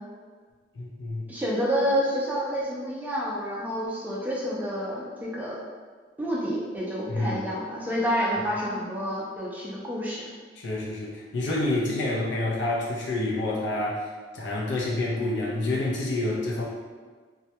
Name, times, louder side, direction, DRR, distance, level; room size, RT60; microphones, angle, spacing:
voice 1, 0.7-1.3 7.1-7.4 10.6-14.1 14.3-16.7, left 2 dB, 70° left, -4 dB, 0.5 m, -28 dB
voice 2, 1.3-5.6 6.2-10.2, equal, 10° right, -6 dB, 0.4 m, -28 dB
2.1 x 2.1 x 2.7 m, 1.5 s
head